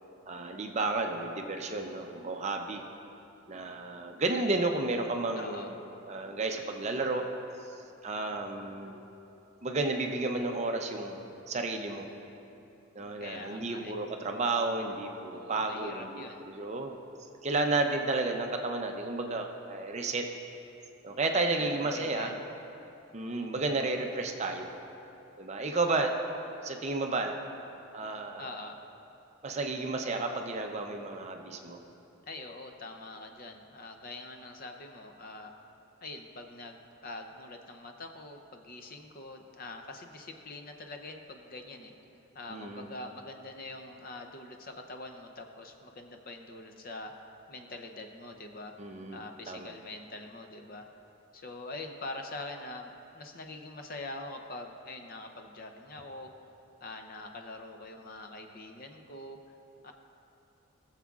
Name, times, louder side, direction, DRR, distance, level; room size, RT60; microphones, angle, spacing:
voice 1, 0.3-2.8 3.5-5.8 6.1-7.2 7.6-7.7 8.0-9.0 9.6-12.1 12.9-17.0 17.4-20.2 21.0-22.4 23.1-24.7 25.4-26.1 26.4-27.4 27.9-28.5 29.4-31.8 42.5-42.9 48.8-49.2 49.5-49.7, right 3 dB, 30° right, 3 dB, 0.5 m, -32 dB
voice 2, 5.4-5.7 13.2-13.9 15.3-16.5 21.3-22.3 28.4-28.8 32.3-35.5 36.0-41.9 42.3-47.2 47.5-48.7 49.1-50.9 51.3-56.3 56.8-59.4 59.8-59.9, left 2 dB, 40° left, 4 dB, 0.6 m, -44 dB
19.5 x 7.2 x 2.4 m, 3.0 s
head